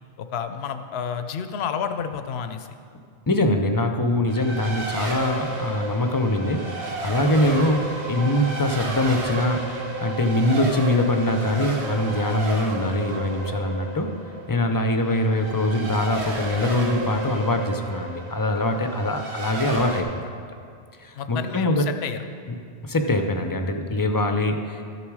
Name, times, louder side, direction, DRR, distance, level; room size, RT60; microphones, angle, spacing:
voice 1, 0.2-2.7 21.2-22.2, left 7 dB, 75° left, 8 dB, 0.9 m, -30 dB
voice 2, 3.3-14.1 14.5-20.3 21.0-21.8 22.8-24.8, left 1 dB, 25° left, 5 dB, 0.6 m, -23 dB
Race car auto racing, 4.3-20.0, right 2 dB, 85° right, 1.5 m, -32 dB
13.5 x 7.1 x 4.8 m, 2.2 s
omnidirectional pair, 1.1 m